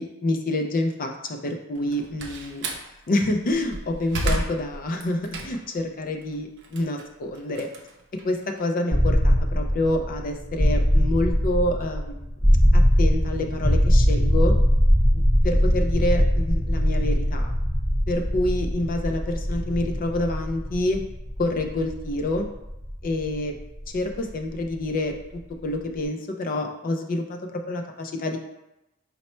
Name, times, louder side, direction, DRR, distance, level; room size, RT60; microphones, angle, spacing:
voice 1, 0.0-2.7 3.1-7.7 8.2-12.3 12.7-14.6 15.1-17.5 18.1-21.0 21.4-22.5 23.0-23.5 23.9-28.4, left 1 dB, 40° left, 4 dB, 0.4 m, -27 dB
Slam, 1.7-2.9 3.4-5.8 6.2-8.6, right 1 dB, 50° right, 0.5 m, -31 dB
sound 1, 8.9-24.7, equal, 10° left, 0.8 m, -21 dB
4.1 x 2.1 x 4.2 m, 0.93 s
head